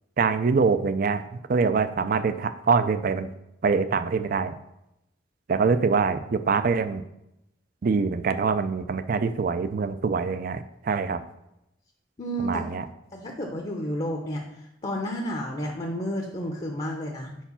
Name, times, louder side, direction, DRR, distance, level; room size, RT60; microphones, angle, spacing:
voice 1, 0.2-1.2 1.5-3.3 3.6-4.5 5.5-7.0 7.8-11.2 12.4-12.8, right 5 dB, 50° right, 11 dB, 0.4 m, -24 dB
voice 2, 12.2-12.6 13.1-14.4 14.8-17.4, equal, 30° left, 1 dB, 0.7 m, -31 dB
4.7 x 4.6 x 5.6 m, 0.88 s
head